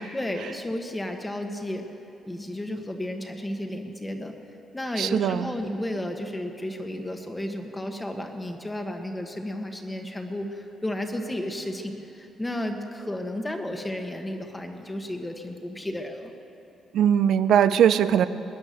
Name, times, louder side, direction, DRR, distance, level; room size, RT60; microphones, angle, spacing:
voice 1, 0.1-1.9 2.3-4.3 4.7-16.3, left 1 dB, 15° left, 4 dB, 1.4 m, -33 dB
voice 2, 5.0-5.5 16.9-18.3, right 9 dB, 75° right, 14 dB, 0.5 m, -20 dB
20.5 x 9.5 x 6.8 m, 2.9 s
cardioid pair, 90°, 0 cm